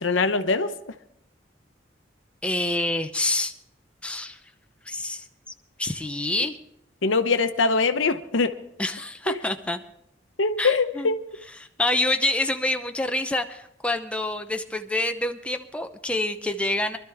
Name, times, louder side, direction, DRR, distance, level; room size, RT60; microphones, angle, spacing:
voice 1, 0.0-0.7 7.0-8.5 9.3-9.4 10.4-11.2, left 4 dB, 75° left, 9 dB, 0.8 m, -22 dB
voice 2, 2.4-3.5 4.0-4.4 4.9-5.3 5.8-6.6 8.8-9.8 10.6-11.1 11.5-17.0, left 2 dB, 5° left, 6 dB, 0.7 m, -27 dB
23.5 x 12.5 x 3.5 m, 0.74 s
head